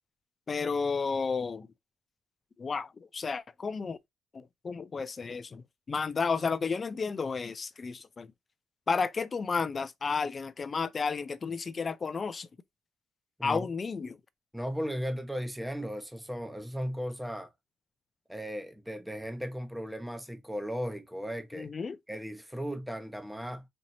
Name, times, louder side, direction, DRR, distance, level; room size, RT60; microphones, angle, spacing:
voice 1, 0.5-1.7 2.6-4.0 4.3-8.3 8.9-12.5 13.4-14.2 21.5-22.0, left 5 dB, 35° left, 0.4 m, -32 dB
voice 2, 14.5-17.5 18.3-21.7 22.1-23.6, equal, 5° right, 0.9 m, -36 dB
4.4 x 2.7 x 2.7 m
cardioid pair, 90°, 0 cm